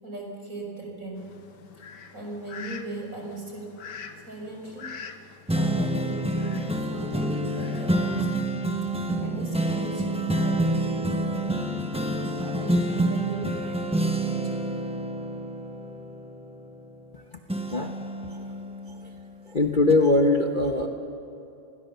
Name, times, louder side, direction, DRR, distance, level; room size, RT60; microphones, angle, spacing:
voice 1, 0.0-1.4 2.1-3.8 4.2-4.9 5.5-8.5 9.2-11.5 12.0-14.6, right 2 dB, 50° right, 0 dB, 5.4 m, -38 dB
Fowl, 1.2-8.2, left 6 dB, 85° left, 1.8 m, -45 dB
sound 1, 5.5-17.1 17.5-19.4 19.9-20.0, right 1 dB, 5° right, 1.1 m, -28 dB
voice 2, 19.5-20.9, left 2 dB, 35° left, 3 dB, 1.2 m, -22 dB
28.5 x 20.5 x 6.9 m, 2.8 s
omnidirectional pair, 1.8 m